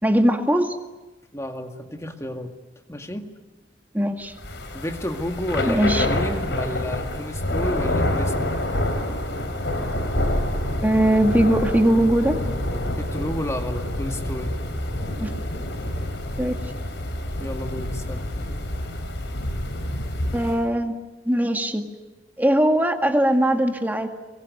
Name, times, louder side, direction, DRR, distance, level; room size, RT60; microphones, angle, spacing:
voice 1, 0.0-0.8 3.9-4.3 5.7-6.1 10.8-12.4 15.2-15.3 16.4-16.6 20.3-20.9 21.3-21.8 22.4-24.1, right 1 dB, 10° right, 4 dB, 1.9 m, -20 dB
voice 2, 1.3-2.5 2.9-3.3 4.7-8.5 12.9-14.5 17.4-18.3, left 1 dB, 15° left, 4 dB, 2.0 m, -31 dB
Thunder / Rain, 4.4-20.7, left 1 dB, 75° left, 3.7 m, -27 dB
23.5 x 23.5 x 9.4 m, 1.2 s
head